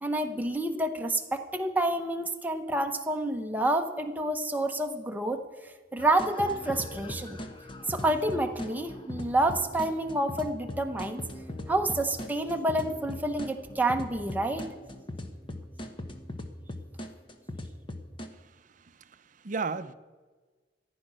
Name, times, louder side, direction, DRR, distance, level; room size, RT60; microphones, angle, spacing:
voice 1, 0.0-7.4 7.9-11.2 11.7-14.7, right 1 dB, 10° right, 4 dB, 1.0 m, -29 dB
sound 1, 6.0-18.3, left 1 dB, 30° left, 1.0 m, -40 dB
voice 2, 18.3-19.9, right 4 dB, 45° right, 13 dB, 0.6 m, -36 dB
14.5 x 10.0 x 6.3 m, 1.4 s
head